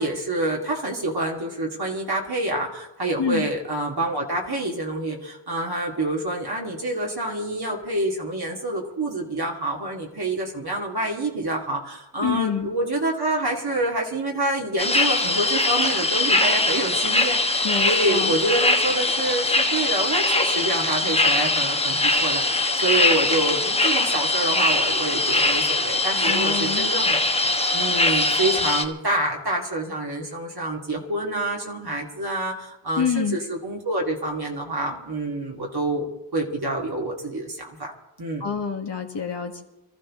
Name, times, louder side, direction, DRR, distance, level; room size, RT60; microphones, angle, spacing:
voice 1, 0.0-37.9 38.2-38.4, right 1 dB, 55° right, -1 dB, 2.5 m, -27 dB
voice 2, 3.2-3.5 12.2-12.7 17.6-18.3 26.2-26.9 33.0-33.4 38.4-39.6, left 6 dB, 70° left, 1 dB, 1.7 m, -27 dB
sound 1, 14.8-28.8, left 2 dB, 15° left, 1.2 m, -22 dB
24.0 x 14.0 x 3.7 m, 0.94 s
wide cardioid pair, 80°, 45 cm